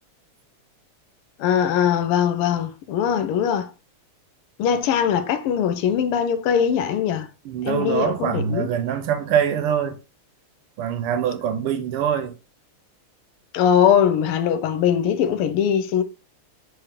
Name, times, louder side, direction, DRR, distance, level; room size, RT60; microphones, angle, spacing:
voice 1, 1.4-3.7 4.6-7.3 7.6-8.7 13.5-16.0, left 8 dB, 90° left, 1.5 m, -21 dB
voice 2, 7.4-10.0 10.8-12.3, right 8 dB, 85° right, 1.6 m, -24 dB
4.3 x 3.3 x 3.6 m
omnidirectional pair, 2.4 m